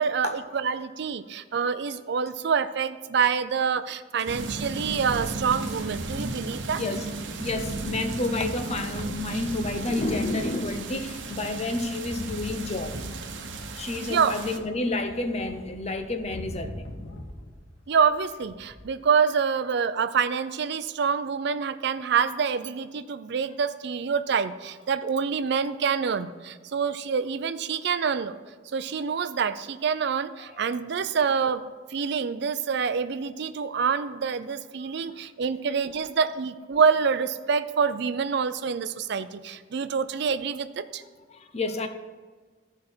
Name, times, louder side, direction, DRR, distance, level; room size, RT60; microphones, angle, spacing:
voice 1, 0.0-6.8 14.0-14.4 17.9-28.4 28.7-31.6 31.9-41.0, right 6 dB, 65° right, 0.4 m, -26 dB
sound 1, 4.3-14.6, right 2 dB, 85° right, 0.9 m, -35 dB
voice 2, 7.4-13.0 13.7-16.9 41.3-41.9, left 2 dB, 35° left, 0.7 m, -30 dB
sound 2, 11.7-17.6 17.9-18.8, left 1 dB, 90° left, 1.5 m, -42 dB
14.5 x 4.9 x 4.4 m
head